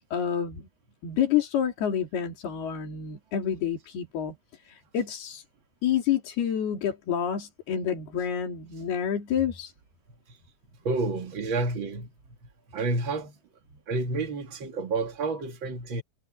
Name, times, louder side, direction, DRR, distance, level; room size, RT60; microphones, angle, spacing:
voice 1, 0.1-0.7 1.0-4.4 4.7-5.4 5.8-9.7, left 9 dB, 90° left, 5.2 m, -28 dB
voice 2, 10.8-12.1 12.7-13.4 13.9-16.0, right 3 dB, 40° right, 2.1 m, -29 dB
omnidirectional pair, 4.4 m